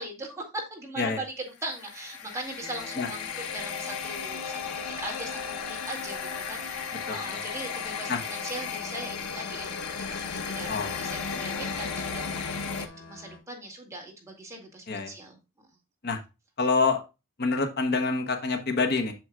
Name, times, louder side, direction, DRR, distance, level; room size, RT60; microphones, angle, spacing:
voice 1, 0.0-6.2 6.5-9.8 10.1-15.4, right 2 dB, 15° right, -1 dB, 2.2 m, -40 dB
sound 1, 1.6-12.9, left 6 dB, 85° left, 0.9 m, -35 dB
sound 2, 2.6-13.4, left 4 dB, 70° left, 3.6 m, -49 dB
voice 2, 7.1-7.4 8.1-8.2 10.7-10.9 14.9-15.1 16.0-16.2 16.6-17.0 17.4-19.1, left 4 dB, 45° left, 5 dB, 0.9 m, -26 dB
7.6 x 7.0 x 2.3 m, 0.27 s
head